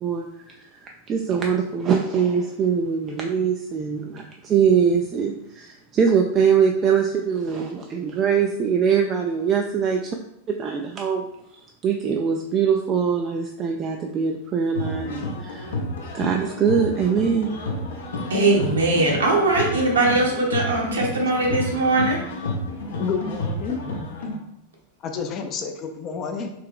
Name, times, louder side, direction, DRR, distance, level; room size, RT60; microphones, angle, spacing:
voice 1, 0.0-10.1 10.5-11.2 11.8-15.7 16.1-17.5, right 6 dB, 30° right, 2 dB, 0.4 m, -22 dB
sound 1, 14.7-24.4, left 1 dB, 60° left, 0.8 m, -30 dB
voice 2, 18.3-22.2, right 2 dB, 70° right, -1 dB, 1.1 m, -20 dB
voice 3, 23.0-23.8 25.0-26.5, left 6 dB, 30° left, 5 dB, 0.5 m, -29 dB
3.3 x 3.2 x 3.5 m, 0.83 s
figure-of-eight pair, 90°, 0 cm